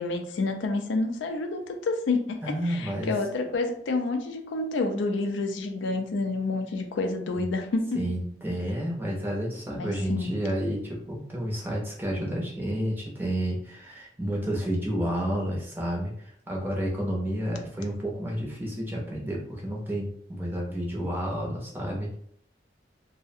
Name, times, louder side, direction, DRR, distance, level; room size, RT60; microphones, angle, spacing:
voice 1, 0.0-8.0 9.7-10.3, left 3 dB, 85° left, 5 dB, 0.4 m, -29 dB
voice 2, 2.4-3.1 7.3-7.4 7.9-22.2, equal, 10° right, -3 dB, 0.5 m, -30 dB
2.4 x 2.0 x 2.6 m, 0.66 s
head